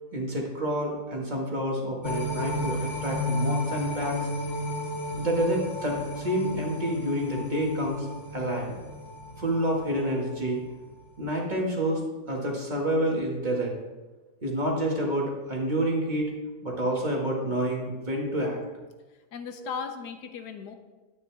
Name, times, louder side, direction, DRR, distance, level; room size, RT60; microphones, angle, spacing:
voice 1, 0.1-4.2 5.1-8.1 8.3-8.7 9.4-10.6 11.2-12.0 12.3-13.7 14.4-16.3 16.6-18.6 19.6-19.7, right 1 dB, 25° right, -2 dB, 1.9 m, -28 dB
sound 1, 2.0-10.4 10.8-10.9, left 1 dB, 20° left, 1.0 m, -33 dB
voice 2, 19.3-20.8, left 6 dB, 75° left, 7 dB, 1.3 m, -37 dB
11.0 x 9.1 x 3.5 m, 1.2 s
omnidirectional pair, 1.8 m